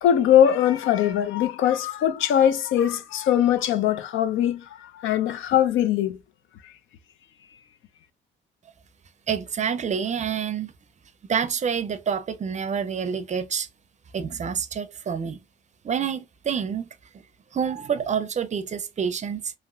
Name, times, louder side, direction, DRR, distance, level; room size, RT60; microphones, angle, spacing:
voice 1, 0.0-6.2 6.6-6.7, left 10 dB, 80° left, 0.5 m, -21 dB
voice 2, 9.3-10.7 11.2-13.7 14.1-15.4 15.8-16.9 17.1-17.2 17.5-19.5, right 7 dB, 35° right, 0.5 m, -27 dB
2.9 x 2.8 x 2.3 m
cardioid pair, 90°, 20 cm